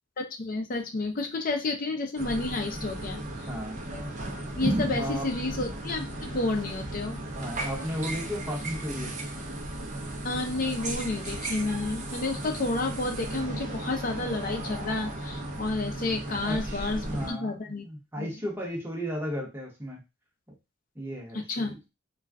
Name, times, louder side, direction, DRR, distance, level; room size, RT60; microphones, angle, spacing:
voice 1, 0.2-3.5 4.6-7.2 10.2-17.9 18.2-18.3 21.3-21.8, left 2 dB, 45° left, 3 dB, 0.6 m, -31 dB
sound 1, 2.2-17.3, right 1 dB, 40° right, 0.6 m, -35 dB
voice 2, 3.5-3.8 4.9-5.3 7.2-9.1 16.4-17.5 17.8-20.0 20.5-20.6 20.9-21.8, equal, 10° right, -2 dB, 0.9 m, -35 dB
2.4 x 2.2 x 3.5 m, 0.25 s
head